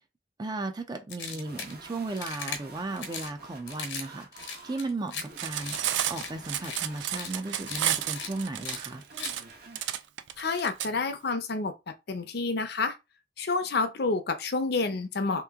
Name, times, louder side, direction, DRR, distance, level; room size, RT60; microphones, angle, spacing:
voice 1, 0.4-5.8 6.1-9.0, right 2 dB, 25° right, 0.5 m, -35 dB
sound 1, 1.1-1.7 2.1-2.6 3.0-3.3 3.7-4.1 4.3-5.2 5.6-5.8 6.1-6.3 6.6-6.8 7.1-7.3 7.6-7.8 8.1-8.3 8.6-8.8 9.2-9.3, left 5 dB, 85° left, 1.1 m, -37 dB
sound 2, 1.3-10.0, right 3 dB, 60° right, 1.1 m, -49 dB
Cutlery silverware, 5.3-10.9, right 11 dB, 90° right, 0.4 m, -31 dB
voice 2, 10.4-11.7 12.1-13.0 13.4-15.4, left 3 dB, 65° left, 0.7 m, -29 dB
3.3 x 3.0 x 3.5 m
head